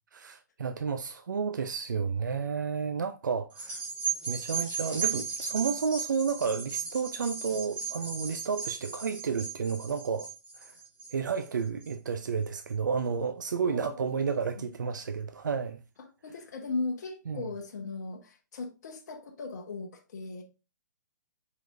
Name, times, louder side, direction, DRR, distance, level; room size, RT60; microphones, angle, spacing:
voice 1, 0.1-3.8 4.3-10.3 10.6-10.7 11.1-15.8 17.3-17.5, right 6 dB, 80° right, 0.4 m, -31 dB
sound 1, 3.5-12.2 12.7-12.8, right 6 dB, 10° right, 1.6 m, -36 dB
voice 2, 13.6-14.1 14.6-14.7 16.0-20.4, left 3 dB, 60° left, 1.1 m, -38 dB
4.7 x 4.0 x 2.6 m
hypercardioid pair, 135°, 10 cm